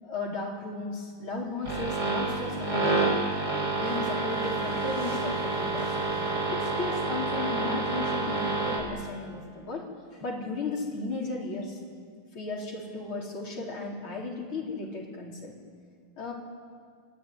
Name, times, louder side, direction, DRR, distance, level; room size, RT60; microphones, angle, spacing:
voice 1, 0.0-3.2 3.7-5.9 6.5-9.9 10.2-11.8 12.3-15.6 16.2-16.3, left 3 dB, 75° left, -1 dB, 5.0 m, -35 dB
sound 1, 1.6-8.8, right 3 dB, 50° right, 7.5 m, -29 dB
27.5 x 22.5 x 9.6 m, 2.1 s
omnidirectional pair, 2.3 m